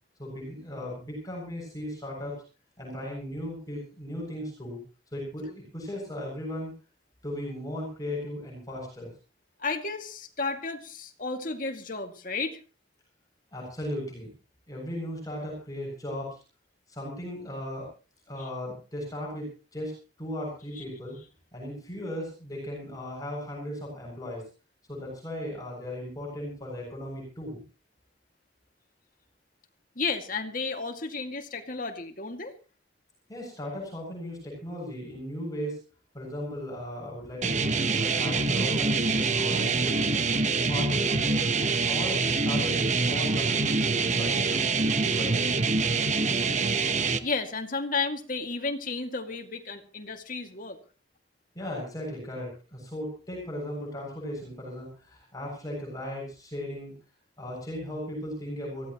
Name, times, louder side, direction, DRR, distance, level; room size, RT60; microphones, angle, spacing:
voice 1, 0.2-2.4 2.8-4.8 5.1-6.7 7.2-9.1 13.5-14.3 14.7-16.4 16.9-17.9 18.3-21.2 21.5-24.4 24.9-27.6 33.3-35.8 36.1-40.2 40.7-41.4 41.9-43.8 44.2-45.5 51.6-56.9 57.4-58.9, left 1 dB, 20° left, -2 dB, 7.2 m, -37 dB
voice 2, 9.6-12.6 18.4-18.5 20.8-20.9 30.0-32.5 47.2-50.8, left 4 dB, 50° left, 4 dB, 2.3 m, -32 dB
sound 1, 37.4-47.2, right 4 dB, 40° right, 1.1 m, -25 dB
23.5 x 16.0 x 3.1 m, 0.36 s
head